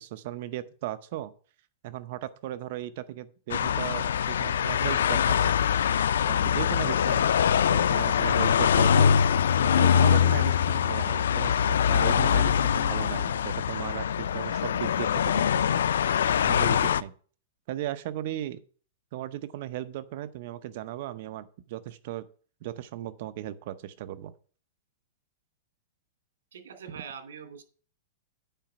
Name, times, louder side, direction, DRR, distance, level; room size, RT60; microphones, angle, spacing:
voice 1, 0.0-1.3 1.8-5.6 6.3-7.4 7.7-9.2 9.6-15.7 16.4-17.1 17.7-18.6 19.1-22.2 22.6-24.3, right 13 dB, 50° right, 13 dB, 0.7 m, -36 dB
sound 1, 3.5-17.0, left 8 dB, 90° left, 0.4 m, -23 dB
voice 2, 26.5-27.6, right 7 dB, 85° right, 6 dB, 2.6 m, -43 dB
9.0 x 5.0 x 6.8 m, 0.42 s
supercardioid pair, 160°, 0 cm